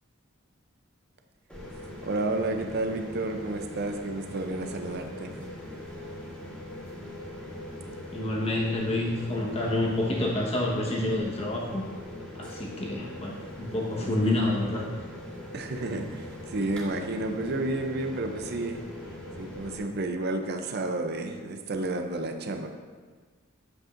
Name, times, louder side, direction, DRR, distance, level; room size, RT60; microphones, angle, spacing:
sound 1, 1.5-19.8, left 1 dB, 5° left, 2.2 m, -41 dB
voice 1, 2.0-5.5 14.0-14.4 15.5-18.8 19.4-22.7, right 2 dB, 55° right, 5 dB, 0.6 m, -31 dB
voice 2, 8.1-11.8 12.3-14.8, left 1 dB, 30° left, -2 dB, 1.2 m, -28 dB
8.6 x 7.6 x 2.5 m, 1.5 s
head